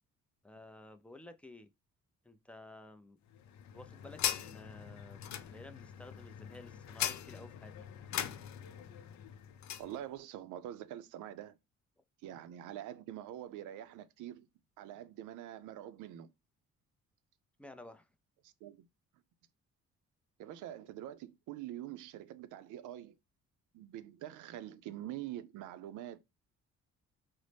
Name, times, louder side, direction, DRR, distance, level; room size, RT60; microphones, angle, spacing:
voice 1, 0.4-1.7 2.3-3.2 3.7-7.9 17.6-18.1, left 1 dB, 5° left, 0.3 m, -53 dB
sound 1, 3.3-9.9, left 10 dB, 65° left, 0.4 m, -41 dB
voice 2, 9.8-11.6 12.2-14.5 14.8-16.3 18.4-18.9 20.4-23.2 23.7-26.2, right 12 dB, 85° right, 0.4 m, -45 dB
4.0 x 2.0 x 3.2 m
cardioid pair, 90°, 30 cm